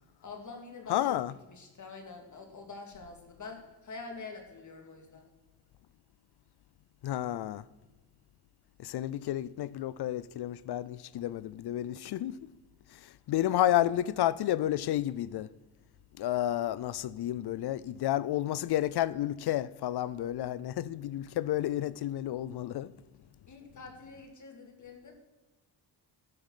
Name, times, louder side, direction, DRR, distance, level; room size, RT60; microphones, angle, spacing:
voice 1, 0.2-1.1 1.5-5.3 23.5-25.2, left 4 dB, 40° left, 2.4 m, -46 dB
voice 2, 0.9-1.3 7.0-7.6 8.8-12.5 12.9-15.5 16.2-22.9, left 13 dB, 65° left, 0.5 m, -31 dB
12.5 x 7.2 x 5.7 m
cardioid pair, 100°, 43 cm